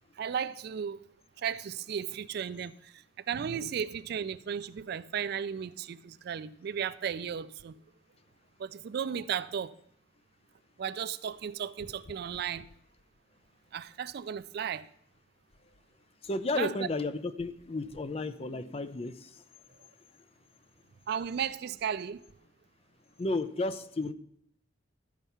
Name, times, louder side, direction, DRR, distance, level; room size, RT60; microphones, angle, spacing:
voice 1, 0.2-1.1 1.4-7.8 8.6-9.7 10.8-12.7 13.7-14.9 16.5-16.9 21.1-22.2, right 7 dB, 55° right, 0.3 m, -35 dB
voice 2, 16.2-19.3 23.2-24.1, left 2 dB, 30° left, 0.4 m, -33 dB
13.5 x 4.6 x 5.6 m
head